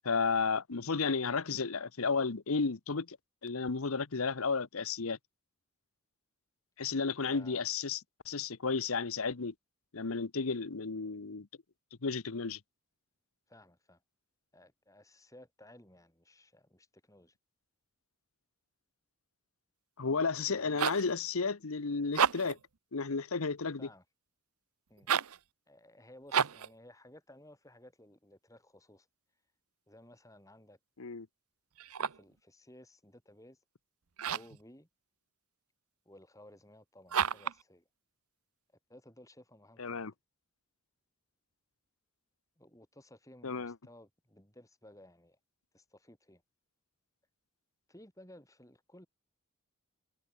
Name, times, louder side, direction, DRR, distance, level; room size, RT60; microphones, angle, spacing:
voice 1, 0.0-3.2 3.4-5.2 6.8-8.0 8.3-9.5 9.9-11.5 12.0-12.6 20.0-22.6 22.9-23.9 31.0-31.3 39.8-40.1 43.4-43.7, left 4 dB, 75° left, 0.9 m, -33 dB
voice 2, 7.3-7.7 13.5-14.0 14.5-17.4 20.5-20.9 23.8-24.0 24.9-25.1 25.7-29.1 29.9-30.8 32.0-33.6 34.2-34.9 36.1-37.9 38.9-40.1 42.6-45.4 45.7-46.4 47.9-49.1, left 1 dB, 15° left, 5.9 m, -57 dB
sound 1, 20.5-21.1 22.0-22.6 25.0-25.4 26.3-26.7 31.8-32.3 34.2-34.6 37.1-37.6, right 7 dB, 90° right, 0.9 m, -31 dB
head